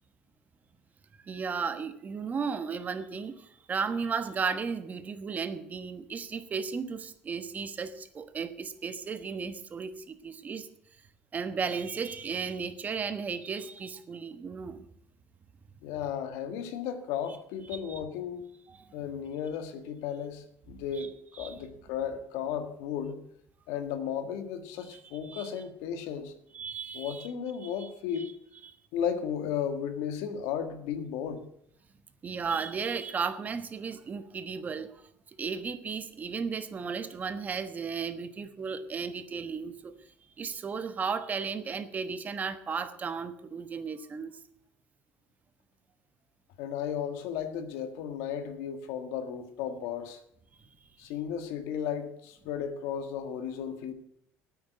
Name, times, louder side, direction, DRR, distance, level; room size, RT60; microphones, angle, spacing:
voice 1, 1.2-10.7 11.3-14.8 17.7-18.0 18.7-18.9 21.0-21.1 21.4-21.5 24.9-25.5 26.5-27.3 27.6-28.3 28.6-28.8 32.2-35.0 35.3-39.9 40.4-44.4, right 5 dB, 30° right, 11 dB, 1.2 m, -35 dB
voice 2, 15.8-18.4 18.9-21.1 21.4-23.2 23.7-26.3 26.9-28.3 28.9-31.4 46.6-50.2 51.0-53.9, left 8 dB, 80° left, 9 dB, 1.7 m, -34 dB
9.3 x 9.0 x 9.2 m, 0.72 s
cardioid pair, 120°, 5 cm